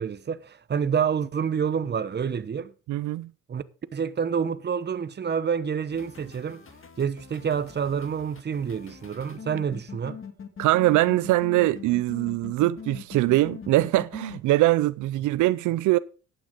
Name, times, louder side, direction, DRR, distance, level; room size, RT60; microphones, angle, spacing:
voice 1, 0.0-2.7 3.5-3.6 3.9-6.6 7.0-10.2, right 7 dB, 35° right, 0.9 m, -28 dB
voice 2, 2.9-3.3 10.6-16.0, right 17 dB, 85° right, 0.5 m, -22 dB
sound 1, 5.9-14.4, left 7 dB, 45° left, 2.0 m, -42 dB
11.5 x 9.0 x 5.0 m
cardioid pair, 90°, 30 cm